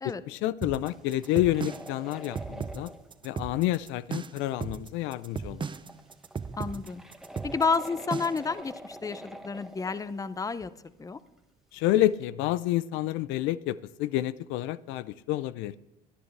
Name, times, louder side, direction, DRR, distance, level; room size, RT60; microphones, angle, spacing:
voice 1, 0.3-2.9 3.2-5.7 11.7-15.7, left 14 dB, 75° left, 0.5 m, -29 dB
sound 1, 0.6-8.5, right 5 dB, 25° right, 0.6 m, -36 dB
sound 2, 0.9-3.2 4.1-4.2 4.6-4.7 5.3-5.4 5.6-10.4 10.6-10.9 11.4-11.5 12.1-12.2, equal, ahead, 1.3 m, -46 dB
voice 2, 6.6-7.0 7.4-10.7 11.0-11.2, left 4 dB, 15° left, 0.6 m, -30 dB
20.5 x 11.0 x 3.3 m
supercardioid pair, 95°, 20 cm